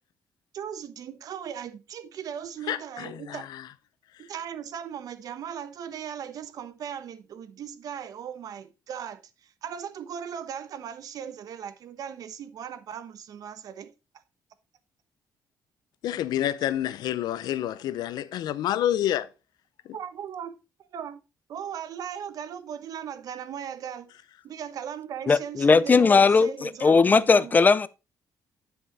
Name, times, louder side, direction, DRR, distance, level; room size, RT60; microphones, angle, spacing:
voice 1, 0.5-3.5 4.2-13.9 19.9-20.5 20.9-21.2 21.5-24.1 24.4-27.6, right 8 dB, 65° right, 1.0 m, -38 dB
voice 2, 2.7-3.6 16.0-19.3, left 11 dB, 85° left, 0.7 m, -28 dB
voice 3, 25.3-27.9, left 4 dB, 25° left, 0.5 m, -19 dB
9.9 x 5.6 x 4.1 m
cardioid pair, 135°, 7 cm